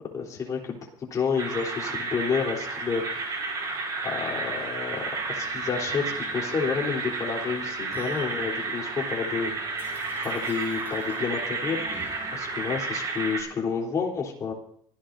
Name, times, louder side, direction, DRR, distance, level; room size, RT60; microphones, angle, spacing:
voice 1, 0.1-3.3 4.0-9.8 10.2-11.8 12.3-14.5, left 5 dB, 30° left, -1 dB, 3.9 m, -30 dB
sound 1, 1.4-13.4, right 3 dB, 35° right, 5.1 m, -32 dB
Musical instrument, 1.5-12.7, right 1 dB, 20° right, 6.8 m, -50 dB
25.0 x 15.0 x 2.8 m, 0.64 s
cardioid pair, 160°, 11 cm